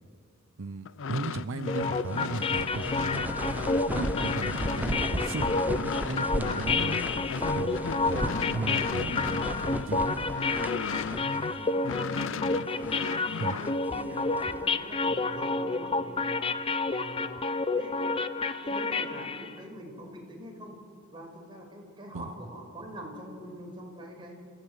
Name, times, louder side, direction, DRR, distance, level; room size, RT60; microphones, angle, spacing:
voice 1, 0.6-3.4 3.9-7.0 7.5-7.8 8.1-9.4 9.9-10.2 13.4-13.6 22.1-22.3, right 3 dB, 70° right, 11 dB, 0.7 m, -36 dB
sound 1, 0.9-11.5 11.8-13.8, left 5 dB, 65° left, 0.5 m, -36 dB
sound 2, 1.7-19.5, left 3 dB, 30° left, 0.7 m, -30 dB
sound 3, 2.1-11.6 11.9-12.0 12.6-13.1 13.6-14.7, right 1 dB, 10° right, 0.6 m, -36 dB
voice 2, 11.2-12.1 13.5-17.2 17.8-20.8 21.1-24.3, equal, 25° right, 0 dB, 5.2 m, -44 dB
30.0 x 15.5 x 7.9 m, 2.2 s
head